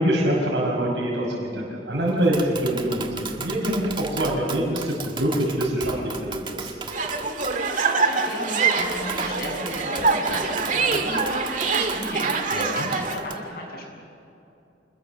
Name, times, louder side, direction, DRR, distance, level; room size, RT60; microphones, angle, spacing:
voice 1, 0.0-6.7, right 1 dB, 90° right, -4 dB, 5.6 m, -24 dB
Tap, 2.1-13.3, right 4 dB, 30° right, 1.6 m, -36 dB
sound 1, 6.9-13.2, right 4 dB, 45° right, 1.9 m, -25 dB
voice 2, 7.5-13.9, left 1 dB, 60° left, 0 dB, 7.5 m, -34 dB
27.5 x 21.0 x 7.1 m, 2.7 s
head